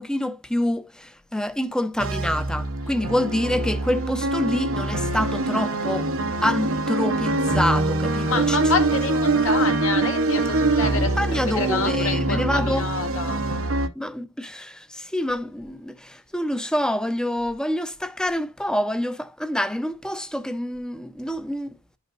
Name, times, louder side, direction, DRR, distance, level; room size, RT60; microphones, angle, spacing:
voice 1, 0.0-6.1 6.4-8.6 10.9-12.8 14.0-22.0, left 1 dB, 5° left, 0.5 m, -27 dB
sound 1, 2.0-13.9, right 2 dB, 90° right, 0.9 m, -24 dB
voice 2, 8.2-13.4, left 3 dB, 75° left, 1.9 m, -28 dB
11.5 x 5.2 x 2.4 m
head